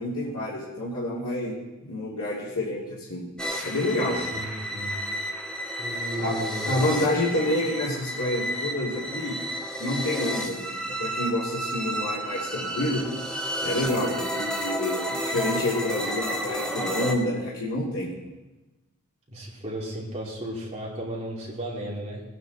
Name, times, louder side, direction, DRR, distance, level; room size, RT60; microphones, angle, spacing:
voice 1, 0.0-3.3 3.6-4.2 6.2-6.3 6.7-9.3 9.8-13.1 13.6-18.1, left 1 dB, 90° left, -7 dB, 2.8 m, -28 dB
sound 1, 3.4-17.1, equal, 5° left, 1.1 m, -31 dB
voice 2, 4.1-4.9 5.8-6.7 19.3-22.2, right 1 dB, 25° right, -4 dB, 2.9 m, -34 dB
19.0 x 9.4 x 4.2 m, 1.1 s
head